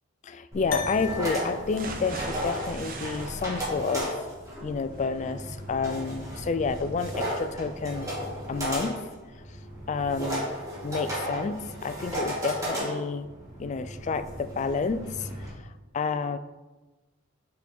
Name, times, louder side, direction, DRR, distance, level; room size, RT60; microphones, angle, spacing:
voice 1, 0.2-4.1 4.6-8.1 8.5-9.0 9.9-10.5 10.8-13.3 13.6-16.4, left 4 dB, 35° left, 11 dB, 0.3 m, -30 dB
sound 1, 0.5-15.5, equal, 15° right, 1.6 m, -35 dB
sound 2, 0.7-5.3, left 5 dB, 70° left, 0.7 m, -39 dB
sound 3, 1.8-9.7 10.1-10.2 10.6-10.7, right 3 dB, 45° right, 0.7 m, -43 dB
8.3 x 4.5 x 3.6 m, 1.1 s
head